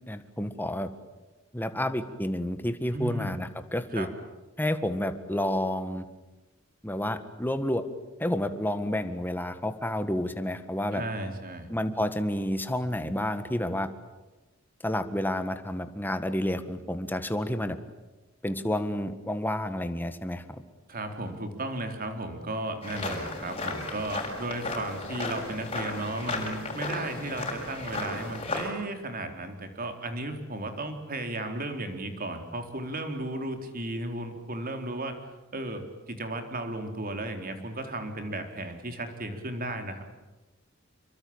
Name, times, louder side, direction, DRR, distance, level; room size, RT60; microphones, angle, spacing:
voice 1, 0.1-0.9 1.5-4.1 4.6-6.1 6.8-7.8 8.2-11.0 11.7-13.9 14.8-17.8 18.4-20.6, left 1 dB, 10° left, 9 dB, 1.7 m, -30 dB
voice 2, 2.9-3.3 3.9-4.1 10.9-11.7 20.9-35.2 35.5-40.0, right 2 dB, 45° right, 6 dB, 4.0 m, -34 dB
sound 1, 22.8-28.7, left 2 dB, 30° left, 6.6 m, -34 dB
28.0 x 23.0 x 8.9 m, 1.1 s
head